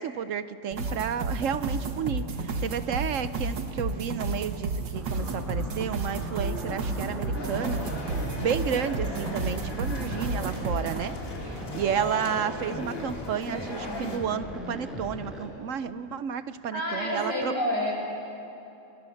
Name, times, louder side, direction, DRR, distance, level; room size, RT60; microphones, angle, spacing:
voice 1, 0.0-17.5, right 7 dB, 60° right, 13 dB, 0.8 m, -32 dB
sound 1, 0.7-11.0, right 3 dB, 80° right, 2.3 m, -32 dB
sound 2, 4.9-15.5, equal, ahead, 5.2 m, -38 dB
sound 3, 7.3-14.2, left 2 dB, 50° left, 2.8 m, -39 dB
voice 2, 16.7-17.9, left 1 dB, 75° left, -3 dB, 7.5 m, -28 dB
28.5 x 22.0 x 7.1 m, 2.9 s
omnidirectional pair, 1.9 m